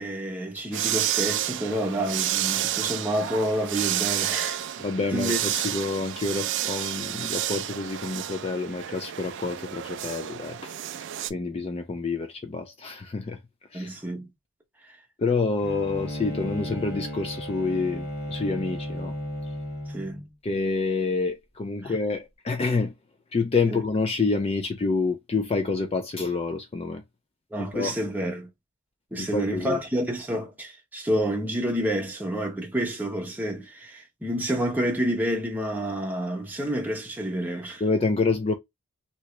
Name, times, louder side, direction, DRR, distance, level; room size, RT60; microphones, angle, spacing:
voice 1, 0.0-4.9 5.1-5.4 13.7-14.2 19.9-20.2 21.8-22.0 23.7-23.8 27.5-28.5 29.1-37.8, right 1 dB, 10° right, 0.8 m, -29 dB
sound 1, 0.7-11.3, right 12 dB, 55° right, 0.3 m, -30 dB
voice 2, 4.8-10.7 11.3-13.4 13.7-13.9 15.2-19.1 20.4-22.9 23.3-27.0 27.6-28.0 29.2-29.8 37.8-38.5, left 3 dB, 25° left, 0.3 m, -28 dB
Bowed string instrument, 15.6-20.3, left 1 dB, 45° left, 1.6 m, -34 dB
2.9 x 2.7 x 3.1 m
head